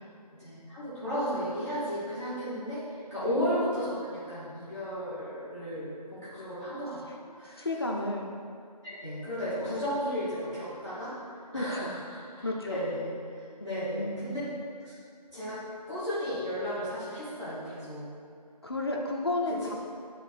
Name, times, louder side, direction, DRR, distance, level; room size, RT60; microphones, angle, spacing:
voice 1, 0.3-7.7 8.8-13.1 13.6-14.4 14.8-14.9 15.3-15.6 15.9-18.1 19.5-19.7, equal, 5° right, -16 dB, 1.0 m, -34 dB
voice 2, 7.6-8.3 9.6-9.7 11.5-11.9 12.4-12.8 13.6-14.4 18.6-19.7, left 2 dB, 35° left, 0 dB, 0.7 m, -32 dB
8.0 x 3.9 x 5.0 m, 2.3 s
figure-of-eight pair, 165°, 21 cm